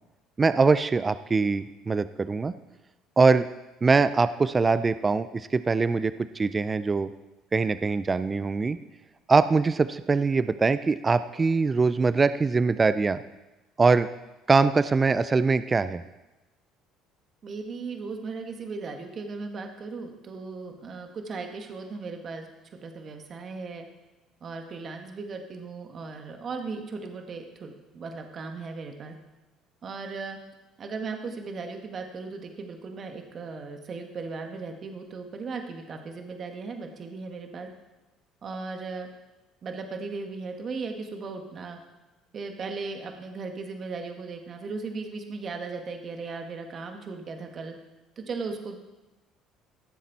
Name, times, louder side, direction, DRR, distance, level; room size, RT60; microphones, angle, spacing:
voice 1, 0.4-2.5 3.2-3.5 3.8-7.1 7.5-8.8 9.3-13.2 13.8-14.1 14.5-16.0, right 4 dB, 30° right, 13 dB, 0.4 m, -23 dB
voice 2, 17.4-22.5 22.8-23.9 24.4-29.1 29.8-30.4 30.8-37.7 38.4-39.1 39.6-41.8 42.3-47.8 48.1-48.8, right 4 dB, 45° right, 4 dB, 1.7 m, -37 dB
15.5 x 7.3 x 4.2 m, 1.1 s
hypercardioid pair, 70°, 0 cm